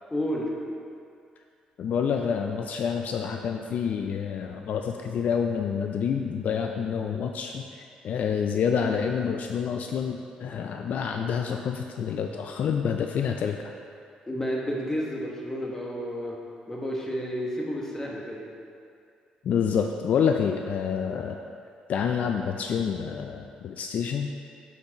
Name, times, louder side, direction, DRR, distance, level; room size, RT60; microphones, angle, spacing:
voice 1, 0.1-0.5 14.3-16.4 16.7-18.5, equal, 15° left, -3 dB, 1.2 m, -31 dB
voice 2, 1.8-7.7 8.0-13.6 19.4-21.4 21.9-24.3, left 7 dB, 65° left, 4 dB, 0.3 m, -28 dB
8.1 x 4.5 x 3.0 m, 2.3 s
cardioid pair, 80°, 3 cm